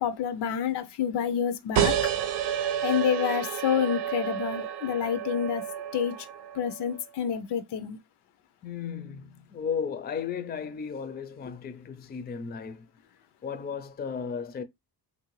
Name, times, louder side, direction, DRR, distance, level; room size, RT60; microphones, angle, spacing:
voice 1, 0.0-1.9 2.8-5.6 5.9-6.3 6.5-8.0, left 8 dB, 85° left, 0.6 m, -28 dB
sound 1, 1.7-6.9, right 9 dB, 90° right, 0.6 m, -30 dB
voice 2, 8.6-12.9 13.4-14.6, left 6 dB, 25° left, 0.4 m, -35 dB
3.2 x 2.6 x 3.0 m
cardioid pair, 120°, 39 cm